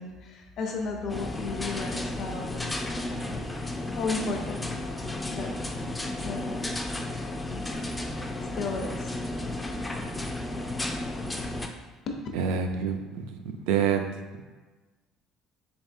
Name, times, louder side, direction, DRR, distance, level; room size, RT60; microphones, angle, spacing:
voice 1, 0.0-2.6 3.9-4.8 5.3-5.5 6.2-6.7 8.5-9.2 11.7-11.8 12.1-12.2, left 4 dB, 50° left, 2 dB, 0.6 m, -34 dB
sound 1, 1.1-11.7, left 1 dB, 10° left, 0.3 m, -33 dB
voice 2, 12.3-13.4 13.7-14.2, right 7 dB, 85° right, 5 dB, 0.4 m, -27 dB
3.8 x 3.5 x 2.6 m, 1.3 s
cardioid pair, 125°, 0 cm